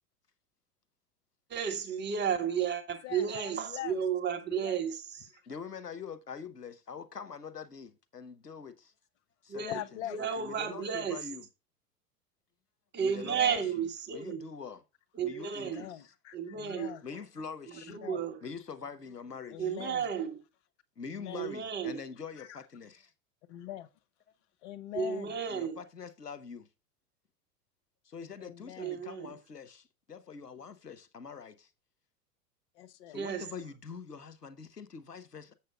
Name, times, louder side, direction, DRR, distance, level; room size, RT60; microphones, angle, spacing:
voice 1, 1.5-5.0 9.5-9.8 10.1-11.2 12.9-14.4 15.2-15.8 16.3-16.9 17.9-18.4 19.6-20.4 21.3-22.0 24.9-25.8 28.8-29.3 33.1-33.5, right 7 dB, 20° right, 1.3 m, -32 dB
voice 2, 3.0-4.0 4.2-4.8 5.3-5.4 9.6-10.5 13.2-13.7 15.5-17.1 17.9-18.2 19.5-20.1 21.1-21.5 22.4-22.6 23.5-23.9 24.6-25.3 28.4-29.0 32.7-33.2, left 12 dB, 50° left, 0.9 m, -43 dB
voice 3, 5.5-8.9 9.4-10.0 10.4-11.5 13.0-14.8 15.2-16.1 17.0-18.0 18.4-19.8 21.0-23.1 25.5-26.7 28.0-31.7 33.1-35.5, left 6 dB, 90° left, 1.0 m, -44 dB
7.5 x 7.1 x 3.8 m
figure-of-eight pair, 90°, 46 cm